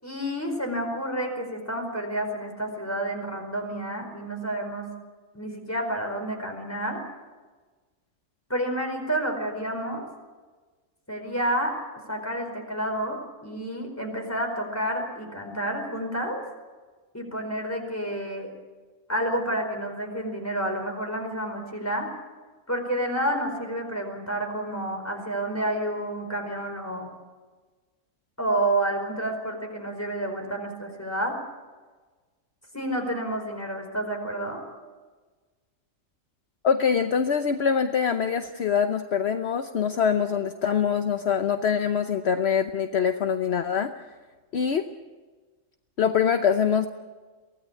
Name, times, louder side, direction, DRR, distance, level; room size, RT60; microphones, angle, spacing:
voice 1, 0.0-4.9 5.3-7.0 8.5-10.1 11.1-11.8 12.1-16.4 17.1-18.5 19.1-22.1 22.7-27.1 28.4-31.4 32.7-34.6, right 1 dB, 10° left, 3 dB, 4.7 m, -29 dB
voice 2, 36.6-43.9 44.5-44.8 46.0-46.9, left 7 dB, 55° left, 8 dB, 1.1 m, -24 dB
23.5 x 17.5 x 8.4 m, 1.3 s
omnidirectional pair, 1.4 m